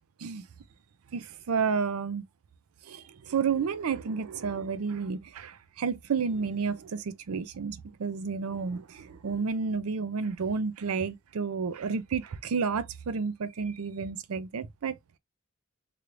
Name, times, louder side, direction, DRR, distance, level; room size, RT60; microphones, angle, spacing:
voice 1, 1.1-2.2 2.8-15.0, right 5 dB, 75° right, 0.5 m, -31 dB
3.1 x 2.5 x 3.1 m
head